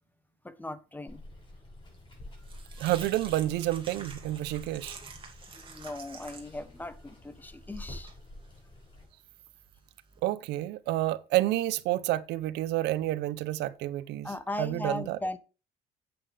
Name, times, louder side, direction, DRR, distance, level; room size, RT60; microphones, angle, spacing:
voice 1, 0.4-1.2 4.0-4.1 5.0-5.1 5.5-8.1 14.2-15.4, left 2 dB, 10° left, 1.0 m, -38 dB
Water, 1.1-9.0, left 1 dB, 30° left, 6.1 m, -48 dB
sound 1, 1.9-10.2, right 5 dB, 30° right, 2.6 m, -50 dB
voice 2, 2.8-5.0 10.2-14.3 14.6-15.2, right 15 dB, 85° right, 0.7 m, -29 dB
8.9 x 8.9 x 3.4 m
cardioid pair, 110°, 17 cm